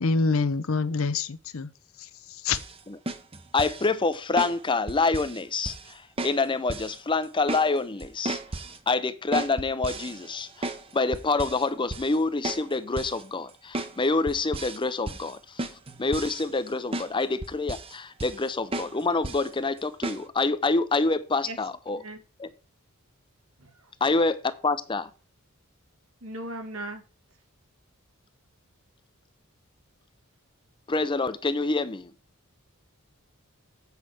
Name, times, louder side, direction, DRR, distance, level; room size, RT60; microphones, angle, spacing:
voice 1, 0.0-1.7 2.0-2.6, left 4 dB, 65° left, 0.7 m, -26 dB
sound 1, 2.5-2.7 3.1-3.9 4.4-4.6 4.9-5.4 5.6-5.9 6.2-6.4 6.7-7.0 7.2-7.7 8.0-8.8 9.3-10.9 11.1-11.6 11.9-12.2 12.4-12.6 13.0-13.2 13.7-13.9 14.3-14.8 15.1-15.3 15.6-16.7 16.9-17.1 17.4-17.9 18.2-18.5 18.7-18.9 19.2-19.5 20.0-20.2, right 2 dB, 25° right, 0.8 m, -34 dB
voice 2, 3.5-8.4 8.9-15.7 16.0-22.0 22.4-22.5 24.0-25.1 30.9-32.1, left 3 dB, 20° left, 0.5 m, -27 dB
voice 3, 21.9-22.2 23.6-23.9 26.2-27.0, right 1 dB, 70° right, 2.0 m, -38 dB
8.2 x 5.8 x 4.8 m
head